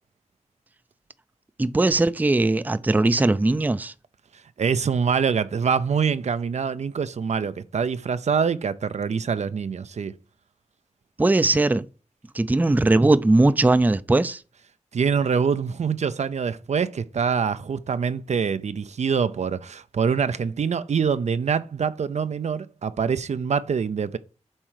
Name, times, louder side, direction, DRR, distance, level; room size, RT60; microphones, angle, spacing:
voice 1, 1.6-3.9 11.2-11.9 12.3-14.4, right 2 dB, 15° right, 0.4 m, -19 dB
voice 2, 4.6-10.1 14.9-24.2, right 6 dB, 70° right, 0.5 m, -25 dB
7.4 x 4.5 x 4.8 m
wide cardioid pair, 110°, 12 cm